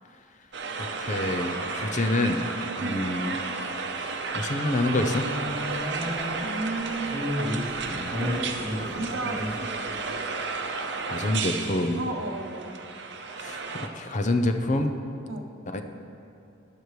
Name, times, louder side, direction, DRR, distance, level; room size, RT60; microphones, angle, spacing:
sound 1, 0.5-13.9, right 4 dB, 60° right, 0.8 m, -33 dB
voice 1, 0.8-2.4 2.8-3.4 4.0-5.3 11.0-12.0 13.4-13.6 13.9-14.9 15.7-15.8, left 2 dB, 35° left, 6 dB, 0.6 m, -27 dB
sound 2, 4.9-6.6 7.0-9.7, left 1 dB, 10° left, 1.8 m, -32 dB
voice 2, 6.4-7.5 8.1-10.2 11.9-12.7 15.3-15.5, right 2 dB, 80° right, 4 dB, 1.0 m, -34 dB
15.0 x 10.5 x 3.2 m, 2.6 s
head